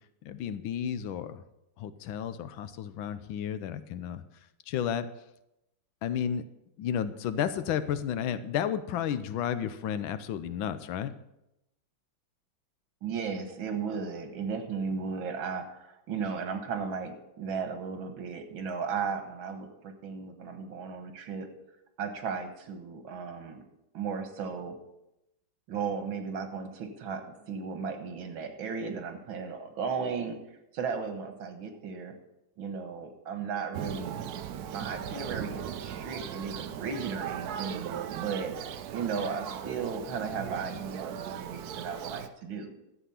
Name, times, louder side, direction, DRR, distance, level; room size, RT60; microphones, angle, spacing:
voice 1, 0.2-1.4 1.8-4.2 4.7-5.1 6.0-6.4 6.8-11.2, left 9 dB, 85° left, 13 dB, 1.5 m, -32 dB
voice 2, 13.0-21.5 22.0-23.6 23.9-24.8 25.7-30.4 30.7-32.2 32.6-34.2 34.7-38.5 38.9-42.7, right 5 dB, 85° right, 6 dB, 2.1 m, -35 dB
Thunder, 33.7-42.3, right 9 dB, 65° right, 1.0 m, -38 dB
12.5 x 7.8 x 5.7 m, 0.89 s
omnidirectional pair, 2.1 m